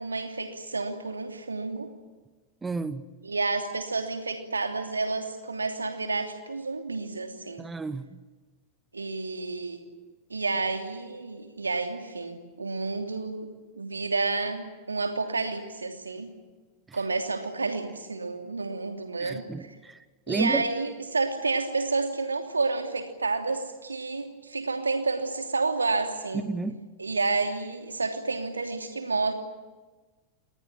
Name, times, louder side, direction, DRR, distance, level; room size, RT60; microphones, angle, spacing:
voice 1, 0.0-1.9 3.2-7.7 8.9-9.8 10.3-13.5 13.8-16.3 16.9-19.8 20.3-26.5 27.0-29.3, right 3 dB, 80° right, 5 dB, 2.9 m, -30 dB
voice 2, 2.6-3.0 7.6-8.2 16.9-17.0 19.2-20.0 20.3-20.6 26.5-26.8, right 3 dB, 15° right, 14 dB, 1.1 m, -31 dB
27.0 x 20.0 x 8.9 m, 1.3 s
figure-of-eight pair, 90°, 0 cm